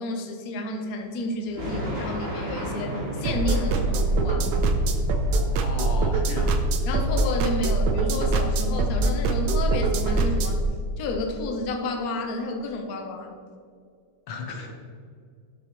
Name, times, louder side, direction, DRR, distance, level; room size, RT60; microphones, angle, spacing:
voice 1, 0.0-4.5 6.9-10.6 11.0-13.3, left 2 dB, 50° left, 3 dB, 1.2 m, -31 dB
sound 1, 1.5-8.2 8.6-9.4 9.8-10.4, equal, 35° right, 2.7 m, -35 dB
sound 2, 3.3-10.6, right 2 dB, 65° right, 1.2 m, -23 dB
voice 2, 5.6-6.6 14.3-14.7, left 4 dB, 90° left, 2 dB, 2.1 m, -34 dB
12.0 x 6.8 x 3.2 m, 2.3 s
omnidirectional pair, 2.4 m